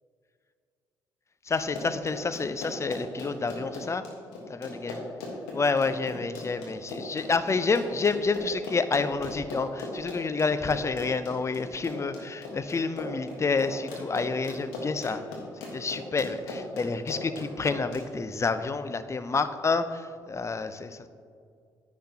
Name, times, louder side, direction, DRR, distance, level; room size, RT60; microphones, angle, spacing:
voice 1, 1.4-4.1 4.5-5.0 5.5-15.2 15.5-21.1, left 4 dB, 30° left, 12 dB, 0.6 m, -29 dB
Run, 1.6-18.0, left 2 dB, 75° left, 1.4 m, -38 dB
10.0 x 9.6 x 2.9 m, 2.2 s
figure-of-eight pair, 45°, 10 cm